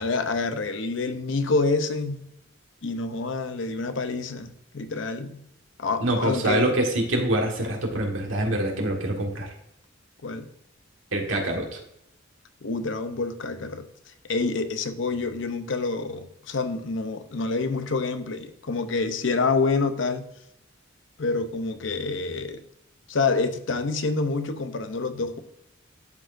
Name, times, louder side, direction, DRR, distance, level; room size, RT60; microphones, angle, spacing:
voice 1, 0.0-2.2 2.8-5.4 5.8-6.7 10.2-10.5 12.6-13.9 14.2-20.3 21.2-22.6 23.1-25.4, left 3 dB, 65° left, 9 dB, 0.7 m, -27 dB
voice 2, 6.0-9.5 11.1-11.8, right 1 dB, 85° right, 1 dB, 1.7 m, -25 dB
12.0 x 4.3 x 2.6 m, 0.80 s
head